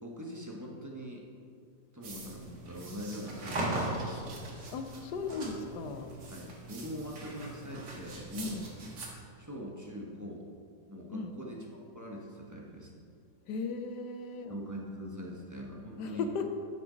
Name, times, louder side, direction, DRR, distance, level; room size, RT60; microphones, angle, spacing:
voice 1, 0.0-1.2 1.9-4.3 6.3-8.6 9.4-10.5 10.9-12.9 14.5-16.3, equal, 15° right, -2 dB, 0.8 m, -42 dB
sound 1, 2.0-9.1, right 2 dB, 75° right, 2.1 m, -40 dB
voice 2, 4.7-6.1 8.4-8.7 11.1-11.3 13.5-14.6 16.0-16.5, left 4 dB, 75° left, 7 dB, 1.3 m, -36 dB
12.5 x 6.1 x 3.9 m, 2.3 s
omnidirectional pair, 1.8 m